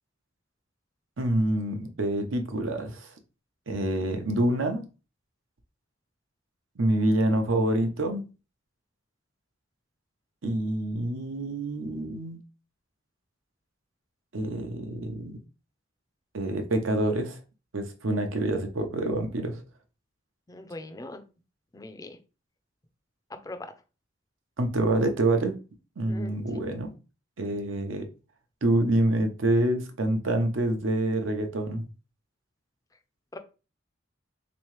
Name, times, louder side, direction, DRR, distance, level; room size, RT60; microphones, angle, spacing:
voice 1, 1.2-3.1 3.7-4.9 6.8-8.2 10.4-12.4 14.3-15.4 16.3-17.4 17.7-19.6 24.6-25.6 26.0-26.9 27.4-28.1 28.6-31.8, right 1 dB, 80° right, 0.7 m, -27 dB
voice 2, 20.5-21.2 21.7-22.2 23.3-23.7 26.1-26.4 33.3-33.4, left 2 dB, 20° left, 0.4 m, -41 dB
3.6 x 3.0 x 3.1 m
head